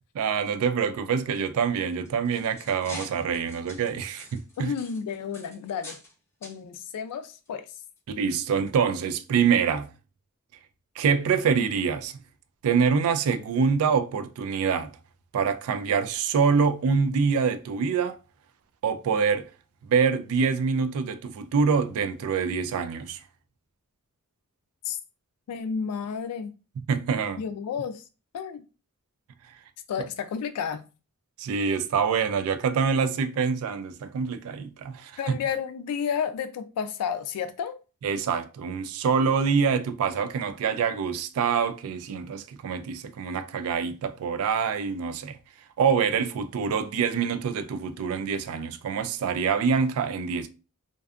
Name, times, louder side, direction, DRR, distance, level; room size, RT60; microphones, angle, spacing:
voice 1, 0.2-4.7 8.1-9.9 11.0-12.1 12.6-14.9 15.3-18.2 18.8-19.5 19.9-23.2 26.9-27.4 31.4-35.4 38.0-45.4 45.8-50.5, right 6 dB, 70° right, 0.3 m, -25 dB
sound 1, 1.9-6.1 6.4-6.6 7.3-7.5 8.0-8.1, left 1 dB, 10° left, 0.6 m, -45 dB
voice 2, 4.6-5.9 6.4-7.7 24.9-25.0 25.5-26.5 27.4-28.0 28.3-28.6 29.9-30.8 35.2-37.7, left 7 dB, 90° left, 0.3 m, -31 dB
2.5 x 2.2 x 2.3 m
head